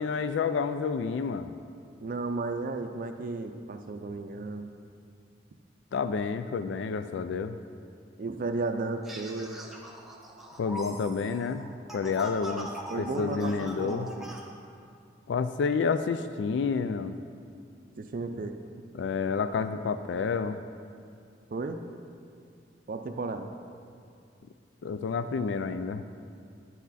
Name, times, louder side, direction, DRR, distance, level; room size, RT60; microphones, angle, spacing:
voice 1, 0.0-1.5 5.9-7.6 10.6-12.7 13.0-14.1 15.3-17.2 18.9-20.6 24.8-26.0, left 5 dB, 75° left, 10 dB, 0.3 m, -29 dB
voice 2, 2.0-4.7 8.2-9.7 12.9-14.3 18.0-18.6 21.5-21.8 22.9-23.5, right 3 dB, 50° right, 6 dB, 0.4 m, -34 dB
sound 1, 9.0-14.4, right 1 dB, ahead, 0.8 m, -42 dB
9.1 x 8.5 x 4.1 m, 2.4 s
head